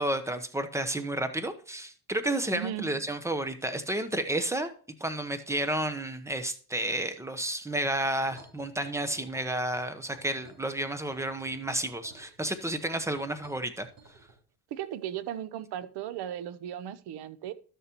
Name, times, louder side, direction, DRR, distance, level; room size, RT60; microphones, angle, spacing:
voice 1, 0.0-4.7 5.0-13.9, right 1 dB, 5° right, 0.9 m, -31 dB
voice 2, 2.5-3.0 14.7-17.5, right 11 dB, 65° right, 0.8 m, -36 dB
sound 1, 8.3-14.3, right 3 dB, 40° right, 4.6 m, -54 dB
12.5 x 6.6 x 3.0 m
cardioid pair, 105°, 41 cm